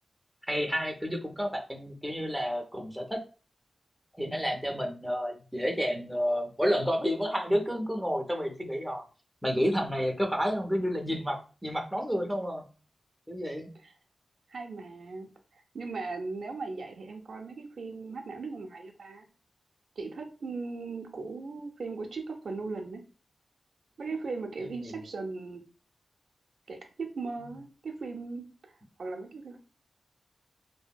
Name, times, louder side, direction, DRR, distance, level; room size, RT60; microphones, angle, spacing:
voice 1, 0.5-3.2 4.2-9.0 9.4-12.6 13.3-13.7 24.8-25.0, equal, ahead, 2 dB, 0.4 m, -30 dB
voice 2, 14.5-19.3 20.0-23.0 24.0-25.6 26.7-28.7 29.0-29.6, right 3 dB, 75° right, 3 dB, 0.4 m, -38 dB
2.7 x 2.5 x 2.2 m, 0.36 s
wide cardioid pair, 145°, 0 cm